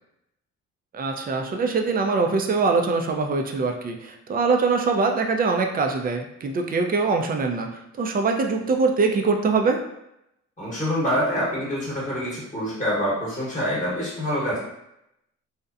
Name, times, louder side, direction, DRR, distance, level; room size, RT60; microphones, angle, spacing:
voice 1, 0.9-7.7 8.0-9.8, right 4 dB, 30° right, 4 dB, 0.4 m, -23 dB
voice 2, 10.6-14.6, equal, 25° left, -7 dB, 1.0 m, -26 dB
2.7 x 2.1 x 2.4 m, 0.82 s
cardioid pair, 90°, 30 cm